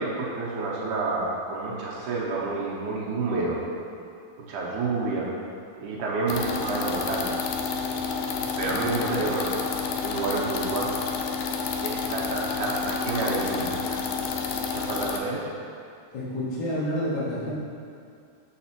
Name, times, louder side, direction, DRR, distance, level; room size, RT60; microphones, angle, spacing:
voice 1, 0.0-3.6 4.5-5.3 5.8-7.4 8.6-9.5 10.0-10.9 11.8-14.2 14.7-15.4, right 3 dB, 85° right, -5 dB, 2.4 m, -29 dB
sound 1, 6.3-15.2, left 5 dB, 85° left, 1.5 m, -30 dB
voice 2, 8.6-9.1 16.1-17.5, equal, 45° left, -9 dB, 1.7 m, -30 dB
6.7 x 5.8 x 2.8 m, 2.4 s
omnidirectional pair, 3.6 m